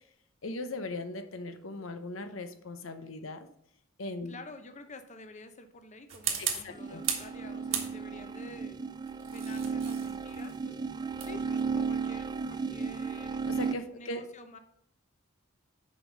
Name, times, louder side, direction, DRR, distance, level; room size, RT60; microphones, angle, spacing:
voice 1, 0.4-3.5 4.0-4.3 6.4-7.0 13.5-14.3, left 2 dB, 90° left, 8 dB, 0.9 m, -39 dB
voice 2, 4.2-8.8 9.3-10.8 11.2-13.4 13.9-14.6, left 2 dB, 35° left, 8 dB, 0.8 m, -49 dB
sound 1, 6.1-7.4 7.7-8.3 9.1-13.8, right 8 dB, 75° right, 1.5 m, -37 dB
sound 2, 6.7-13.7, right 5 dB, 20° right, 0.4 m, -34 dB
6.7 x 5.3 x 6.6 m, 0.71 s
head